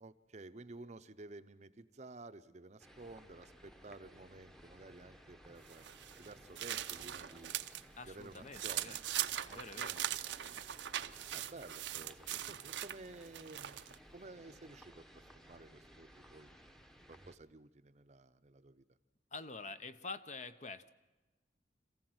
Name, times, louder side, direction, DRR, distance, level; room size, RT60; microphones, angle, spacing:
voice 1, 0.0-5.8 6.2-7.5 8.0-9.0 9.5-10.6 11.3-13.8 14.1-15.0 15.3-16.5 17.1-18.8, right 2 dB, 40° right, 11 dB, 0.7 m, -53 dB
sound 1, 2.8-17.4, equal, 5° left, 0.9 m, -59 dB
sound 2, 5.7-7.8 8.2-14.0, right 12 dB, 75° right, 0.6 m, -41 dB
voice 2, 8.0-9.0 9.5-10.0 19.3-20.9, left 3 dB, 40° left, 11 dB, 0.8 m, -47 dB
26.5 x 15.0 x 7.9 m, 1.2 s
head